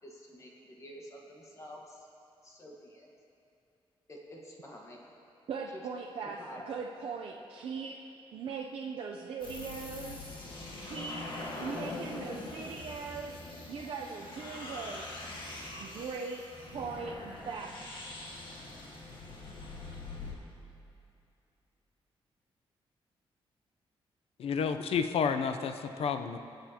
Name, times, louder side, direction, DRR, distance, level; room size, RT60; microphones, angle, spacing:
voice 1, 0.0-2.1 2.4-3.1 4.1-5.0 6.4-6.6, equal, 30° left, -1 dB, 1.4 m, -49 dB
voice 2, 5.5-6.4 6.7-8.0 8.3-11.3 11.6-15.1 15.8-18.0, right 5 dB, 65° right, -1 dB, 0.6 m, -40 dB
sound 1, 9.4-20.3, left 2 dB, 55° left, 1.8 m, -43 dB
voice 3, 24.4-26.4, left 6 dB, 75° left, 8 dB, 0.6 m, -30 dB
23.0 x 8.0 x 2.9 m, 2.7 s
wide cardioid pair, 145°, 10 cm